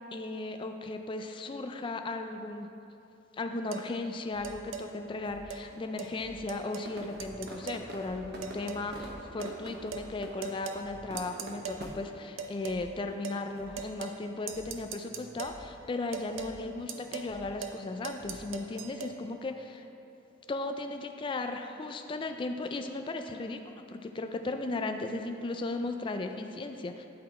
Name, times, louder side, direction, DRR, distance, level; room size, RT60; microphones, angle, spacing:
voice 1, 0.0-2.7 3.4-19.8 20.5-27.0, left 2 dB, 25° left, 6 dB, 0.3 m, -36 dB
sound 1, 3.7-3.9 4.4-4.9 5.5-5.6 6.0-6.1 6.5-6.9 7.2-7.9 8.4-8.9 9.4-9.6 9.9-10.1 10.4-10.8 11.2-11.8 12.4-12.8 13.2-13.4 13.8-14.2 14.5-15.6 16.1-16.5 16.9-17.3 17.6-17.8 18.0-19.1, right 7 dB, 85° right, 0.5 m, -40 dB
sound 2, 4.3-19.8, equal, ahead, 1.2 m, -54 dB
sound 3, 6.8-11.9, right 2 dB, 55° right, 0.9 m, -45 dB
10.5 x 3.9 x 4.3 m, 2.8 s
head